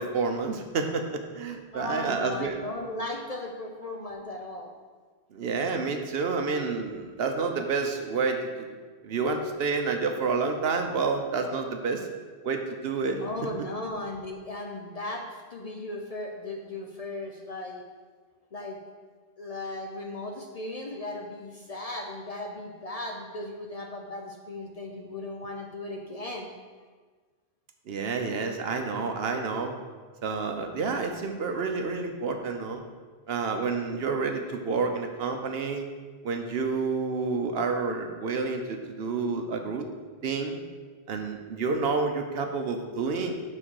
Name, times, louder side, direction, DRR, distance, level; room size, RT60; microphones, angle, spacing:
voice 1, 0.0-2.6 5.3-8.7 9.0-12.1 12.4-13.2 27.9-29.7 30.2-32.8 33.3-35.9 36.2-39.9 40.2-40.6 41.1-43.3, right 4 dB, 65° right, 5 dB, 0.9 m, -29 dB
voice 2, 1.7-4.7 13.2-17.8 18.5-18.8 19.4-26.5, left 2 dB, 45° left, 1 dB, 0.6 m, -37 dB
6.2 x 4.4 x 6.2 m, 1.5 s
omnidirectional pair, 1.1 m